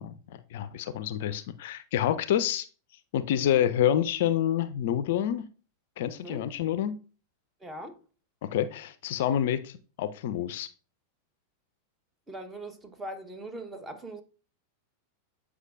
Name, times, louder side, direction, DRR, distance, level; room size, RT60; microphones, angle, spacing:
voice 1, 0.0-2.7 3.1-5.5 6.0-7.0 8.4-10.7, left 10 dB, 55° left, 0.4 m, -28 dB
voice 2, 7.6-8.0 12.3-14.2, right 1 dB, 15° right, 1.1 m, -40 dB
8.0 x 4.8 x 2.5 m
figure-of-eight pair, 90°, 0 cm